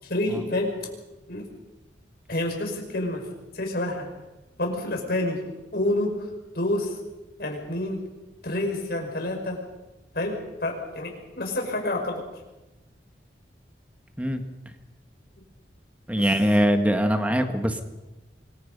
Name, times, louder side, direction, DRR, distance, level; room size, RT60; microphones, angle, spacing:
voice 1, 0.0-0.8 1.3-1.5 2.3-3.3 3.5-4.1 4.6-5.4 5.7-6.3 6.5-7.0 7.4-8.0 8.4-9.6 10.1-12.2 16.2-16.3, left 1 dB, 60° left, 1 dB, 5.8 m, -28 dB
voice 2, 16.1-17.8, equal, 10° right, 6 dB, 1.7 m, -22 dB
25.0 x 22.5 x 5.5 m, 1.0 s
head